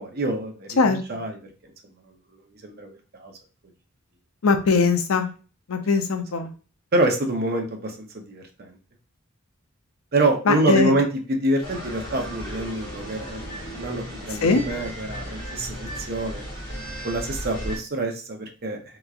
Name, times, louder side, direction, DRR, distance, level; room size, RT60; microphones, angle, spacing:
voice 1, 0.0-1.4 2.6-3.3 6.9-8.8 10.1-16.4 17.0-19.0, right 2 dB, 45° right, 3 dB, 0.7 m, -26 dB
voice 2, 4.4-5.3 5.7-6.5 10.5-10.9 14.4-14.6, left 4 dB, 80° left, 7 dB, 0.5 m, -20 dB
sound 1, 11.6-17.8, equal, 25° left, 1.5 m, -35 dB
3.5 x 3.0 x 2.4 m, 0.36 s
head